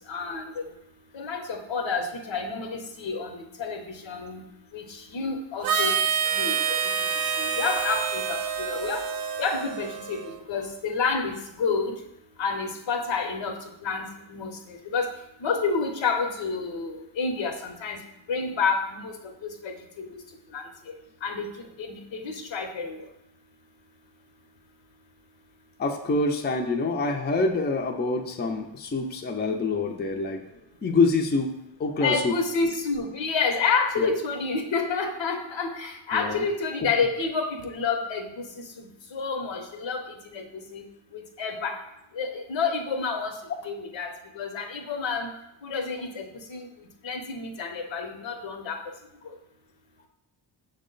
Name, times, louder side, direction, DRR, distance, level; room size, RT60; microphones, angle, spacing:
voice 1, 0.1-0.7 1.1-4.4 4.7-6.0 6.3-6.5 7.2-9.0 9.4-12.0 12.4-15.1 15.4-18.0 18.3-19.1 19.4-20.2 20.5-20.6 21.2-21.5 21.8-23.1 32.0-38.6 39.1-40.0 40.3-40.8 41.1-41.8 42.1-43.4 43.6-45.3 45.6-46.7 47.0-48.8, left 4 dB, 70° left, 4 dB, 0.8 m, -29 dB
Harmonica, 5.6-10.4, right 6 dB, 50° right, 0.5 m, -27 dB
voice 2, 25.8-30.4 30.8-31.5 31.8-32.3 34.0-34.1 36.1-36.4 36.8-36.9, left 3 dB, 20° left, 2 dB, 0.5 m, -26 dB
6.0 x 2.1 x 3.8 m, 0.84 s
cardioid pair, 60°, 48 cm